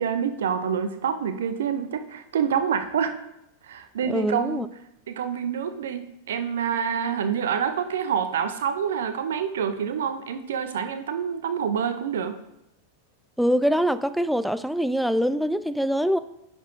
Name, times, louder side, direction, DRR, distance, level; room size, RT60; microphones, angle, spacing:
voice 1, 0.0-3.2 3.7-4.6 5.1-12.3, right 7 dB, 60° right, 9 dB, 0.6 m, -27 dB
voice 2, 4.0-4.7 13.4-16.2, equal, ahead, 12 dB, 0.3 m, -24 dB
10.0 x 6.0 x 2.6 m, 0.85 s
figure-of-eight pair, 90°, 0 cm